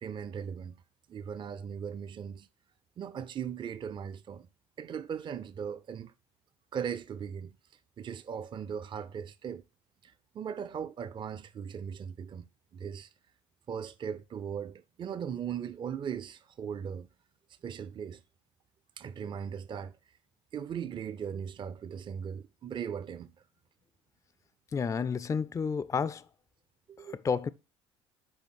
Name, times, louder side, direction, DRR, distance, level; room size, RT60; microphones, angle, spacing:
voice 1, 0.0-0.8 1.1-2.5 3.0-4.5 4.8-6.1 6.7-7.6 8.0-9.6 10.0-12.4 12.7-13.1 13.7-17.1 17.6-18.2 19.0-20.0 20.5-23.3 26.9-27.2, right 7 dB, 30° right, 0.5 m, -38 dB
voice 2, 24.7-26.2 27.1-27.5, left 6 dB, 20° left, 0.5 m, -30 dB
6.3 x 5.0 x 6.0 m
figure-of-eight pair, 60°, 16 cm